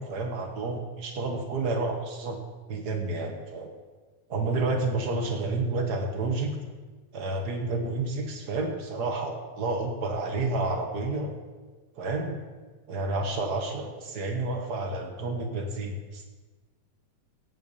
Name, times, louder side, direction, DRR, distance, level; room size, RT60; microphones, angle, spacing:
voice 1, 0.0-2.4 2.7-3.7 4.3-6.6 7.1-11.3 12.0-12.4 12.9-16.2, right 3 dB, 60° right, 3 dB, 1.0 m, -30 dB
17.0 x 5.9 x 7.0 m, 1.3 s
omnidirectional pair, 3.6 m